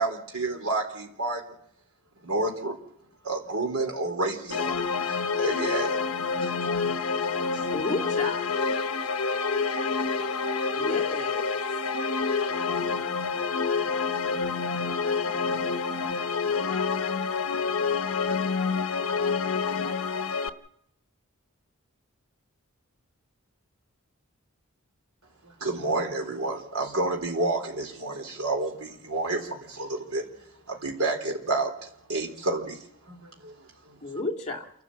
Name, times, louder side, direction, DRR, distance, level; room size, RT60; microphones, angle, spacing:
voice 1, 0.0-1.5 2.2-2.8 3.2-4.8 5.1-6.0 6.4-6.5 7.5-7.8 25.4-30.3 30.7-33.5 33.8-34.0, right 2 dB, 80° right, 2 dB, 3.9 m, -30 dB
sound 1, 4.5-20.5, left 5 dB, 75° left, 1.0 m, -28 dB
voice 2, 7.7-8.6 10.8-11.5 34.0-34.7, left 2 dB, 30° left, 0 dB, 2.3 m, -32 dB
voice 3, 9.8-10.3 10.8-11.1 12.7-16.4, right 1 dB, 45° right, 0 dB, 7.6 m, -55 dB
29.0 x 12.5 x 7.9 m, 0.76 s
head